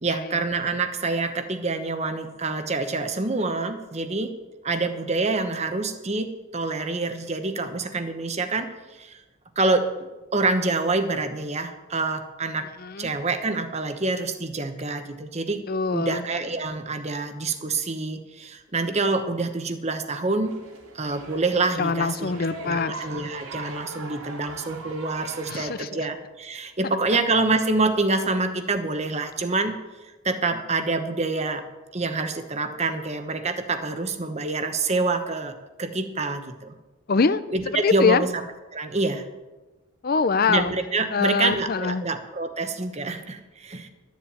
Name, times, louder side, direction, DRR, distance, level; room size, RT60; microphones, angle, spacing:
voice 1, 0.0-4.3 4.6-9.2 9.6-9.9 10.3-12.7 13.0-15.6 15.9-20.5 20.9-22.3 22.6-29.7 30.2-31.6 31.9-36.7 37.5-38.4 38.7-39.2 40.5-43.9, right 3 dB, 30° right, 8 dB, 1.0 m, -26 dB
voice 2, 12.8-13.1 15.7-16.2 21.8-22.9 25.5-26.0 37.1-37.4 37.8-38.2 40.0-40.7 41.1-42.0, left 4 dB, 45° left, 15 dB, 0.5 m, -23 dB
sound 1, 20.4-25.7, right 3 dB, 75° right, 2.9 m, -40 dB
12.5 x 7.3 x 8.7 m, 1.1 s
head